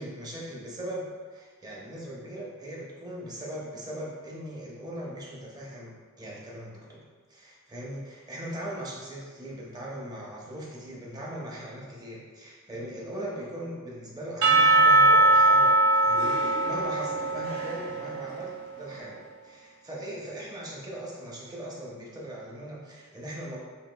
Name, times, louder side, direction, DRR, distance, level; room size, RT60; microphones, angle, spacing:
voice 1, 0.0-23.6, right 1 dB, 20° right, -4 dB, 0.8 m, -39 dB
Percussion / Church bell, 14.4-18.5, right 2 dB, 70° right, 0.6 m, -21 dB
7.0 x 2.5 x 2.3 m, 1.4 s
head